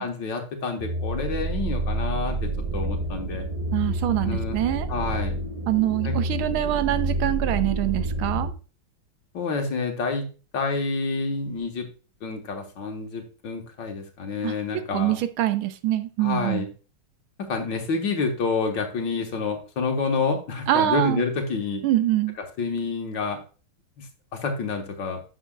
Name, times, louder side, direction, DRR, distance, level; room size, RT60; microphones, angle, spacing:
voice 1, 0.0-3.5 4.2-4.6 4.9-5.3 6.0-6.2 9.3-10.3 10.5-11.9 12.2-15.1 16.2-16.7 17.4-21.8 22.6-23.4 24.0-24.1 24.3-25.2, left 4 dB, 60° left, 4 dB, 1.8 m, -28 dB
sound 1, 0.8-8.5, right 2 dB, 20° right, 1.1 m, -28 dB
voice 2, 3.7-4.9 5.7-8.5 14.4-14.5 14.9-16.7 20.7-21.2 21.8-22.4, right 13 dB, 80° right, 11 dB, 1.5 m, -24 dB
10.0 x 7.1 x 2.2 m, 0.34 s
omnidirectional pair, 2.3 m